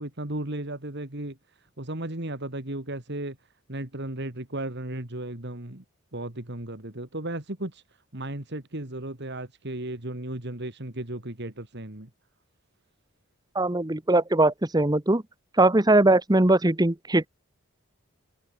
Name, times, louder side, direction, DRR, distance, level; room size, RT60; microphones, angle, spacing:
voice 1, 0.0-3.4 3.7-5.8 6.1-12.1, right 1 dB, 55° right, 2.7 m, -35 dB
voice 2, 13.5-15.2 15.6-17.3, right 2 dB, 20° right, 1.1 m, -21 dB
head